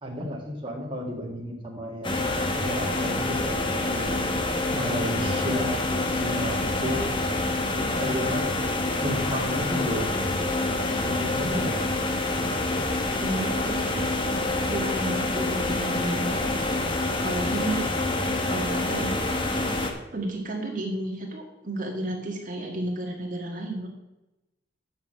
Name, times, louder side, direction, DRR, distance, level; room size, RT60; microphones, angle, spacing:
voice 1, 0.0-2.3 2.5-4.1 4.7-5.8 6.1-7.1 7.8-8.4 9.0-10.3 11.1-11.8, equal, 30° right, -2 dB, 1.8 m, -32 dB
sound 1, 2.0-19.9, left 2 dB, 25° left, 1.1 m, -27 dB
voice 2, 13.2-14.3 14.7-16.5 17.2-17.9 18.5-19.2 20.1-23.9, right 1 dB, 45° right, 0 dB, 1.7 m, -32 dB
7.5 x 6.3 x 7.4 m, 0.96 s
head